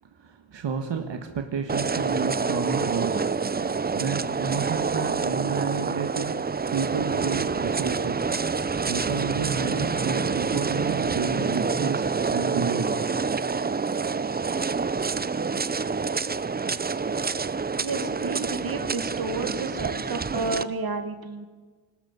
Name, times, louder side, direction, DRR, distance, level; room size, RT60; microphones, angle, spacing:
voice 1, 0.0-8.3 8.9-13.0, right 5 dB, 70° right, 5 dB, 1.7 m, -31 dB
sound 1, 1.7-20.6, right 5 dB, 20° right, 0.5 m, -27 dB
voice 2, 17.8-21.5, right 3 dB, 50° right, 7 dB, 2.1 m, -31 dB
25.0 x 13.0 x 8.2 m, 1.4 s
wide cardioid pair, 150°, 45 cm